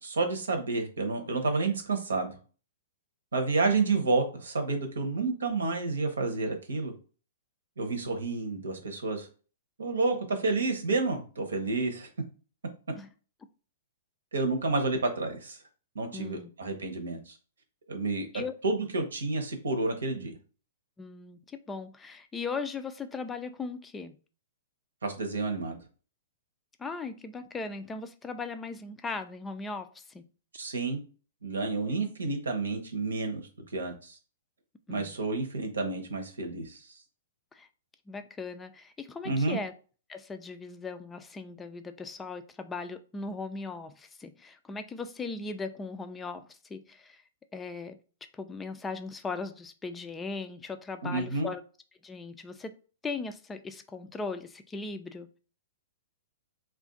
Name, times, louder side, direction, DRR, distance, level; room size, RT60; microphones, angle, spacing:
voice 1, 0.0-2.3 3.3-6.9 7.8-9.3 9.8-12.1 14.3-15.6 15.9-17.3 17.9-20.3 25.0-25.8 30.5-31.0 31.4-33.5 33.7-34.2 34.9-36.8 39.2-39.6 51.0-51.5, right 3 dB, 90° right, 0.9 m, -30 dB
voice 2, 16.1-16.5 18.3-18.5 21.0-24.1 26.8-30.2 34.9-35.2 37.5-37.7 38.1-39.7 40.1-47.2 47.5-48.0 48.3-51.6 52.0-52.7 53.0-55.3, left 4 dB, 15° left, 0.3 m, -38 dB
2.5 x 2.4 x 3.8 m
hypercardioid pair, 130°, 0 cm